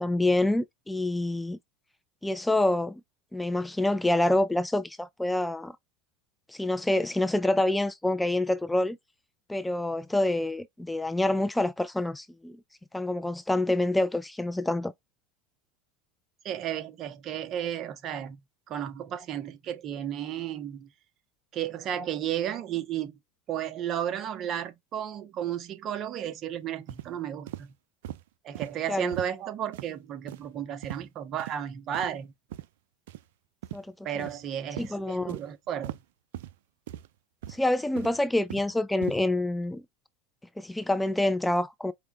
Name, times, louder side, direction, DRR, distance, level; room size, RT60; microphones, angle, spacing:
voice 1, 0.0-1.6 2.2-3.0 3.3-5.7 6.5-9.0 9.5-12.6 12.9-14.9 28.9-29.1 33.7-33.9 34.2-34.3 34.8-35.4 37.5-39.8 40.6-41.9, left 1 dB, 5° left, 0.3 m, -27 dB
voice 2, 16.4-18.4 18.7-20.9 21.5-23.1 23.5-27.7 28.4-32.3 34.0-36.0, right 10 dB, 45° right, 0.7 m, -33 dB
sound 1, 26.9-27.1 27.5-27.6 28.0-28.2 28.6-28.7 29.1-29.3 29.7-29.9 30.3-30.5 30.8-31.1 31.4-31.6 31.9-32.1 32.5-32.7 33.1-33.2 33.6-33.8 34.2-34.4 34.8-34.9 35.3-35.4 35.8-36.0 36.3-36.5 36.9-37.1 37.4-37.6 38.0-38.7 39.0-39.2, right 14 dB, 75° right, 0.3 m, -39 dB
4.9 x 2.1 x 3.3 m
hypercardioid pair, 85°, 0 cm